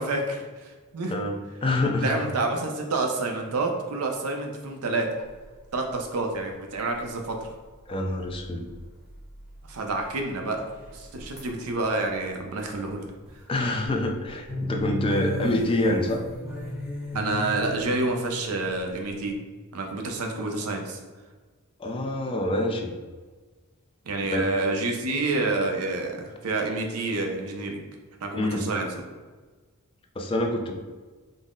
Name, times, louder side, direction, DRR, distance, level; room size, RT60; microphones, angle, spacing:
voice 1, 0.0-1.1 2.0-5.2 5.7-7.5 9.7-13.1 17.1-19.4 19.7-21.0 24.1-27.8 28.2-28.9, right 2 dB, 75° right, 3 dB, 0.6 m, -28 dB
voice 2, 1.6-2.2 7.9-8.7 13.5-16.2 21.8-22.9 24.3-24.4 28.4-28.7 30.2-30.7, left 1 dB, 25° left, 2 dB, 0.4 m, -26 dB
sound 1, 5.3-5.9 6.3-6.4 6.8-7.9 8.2-10.3 10.7-12.2 12.7-12.9 13.3-13.5 13.8-19.4, left 1 dB, 5° right, 0.8 m, -37 dB
3.8 x 2.0 x 3.7 m, 1.4 s
head